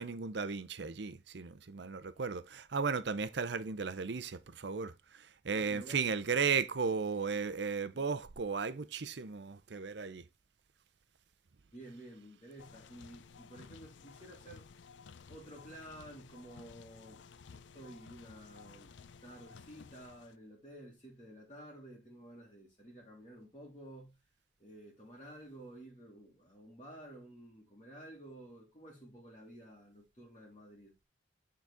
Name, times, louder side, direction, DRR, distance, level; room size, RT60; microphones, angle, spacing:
voice 1, 0.0-10.2, right 5 dB, 70° right, 0.6 m, -35 dB
voice 2, 5.5-6.2 11.7-14.7 15.3-17.2 17.5-19.0 19.2-24.2 24.6-30.9, right 1 dB, 30° left, 2.1 m, -52 dB
sound 1, 12.6-20.4, left 5 dB, 80° left, 0.5 m, -55 dB
8.9 x 4.0 x 3.5 m
head